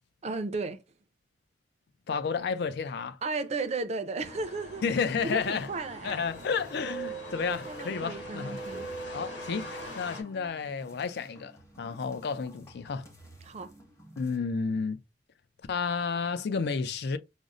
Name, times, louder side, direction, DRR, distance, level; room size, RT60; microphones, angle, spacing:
voice 1, 0.2-0.8 3.2-4.8 5.2-6.2 7.7-8.9 13.4-13.7, right 3 dB, 40° right, 0.4 m, -34 dB
voice 2, 2.1-3.2 4.8-5.7 6.0-8.6 9.1-13.1 14.2-15.0 15.7-17.2, left 5 dB, 65° left, 0.4 m, -31 dB
sound 1, 4.2-10.2, right 1 dB, 80° left, 1.5 m, -41 dB
sound 2, 4.8-14.4, right 1 dB, 15° left, 0.9 m, -54 dB
5.1 x 2.0 x 2.4 m
head